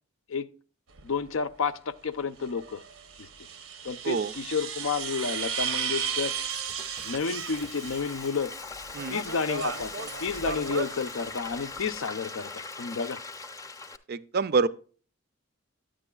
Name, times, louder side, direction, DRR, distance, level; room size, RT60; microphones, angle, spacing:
sound 1, 0.9-1.0 2.4-8.4 8.7-12.0, right 7 dB, 80° right, 0.7 m, -35 dB
voice 1, 1.0-2.8 3.2-3.3 3.8-6.3 7.0-8.5 9.1-9.9 10.2-13.2, left 5 dB, 75° left, 0.5 m, -31 dB
Frying (food), 6.1-14.0, left 3 dB, 15° left, 0.6 m, -41 dB
voice 2, 14.1-14.7, right 4 dB, 50° right, 0.4 m, -26 dB
9.8 x 8.9 x 2.3 m
head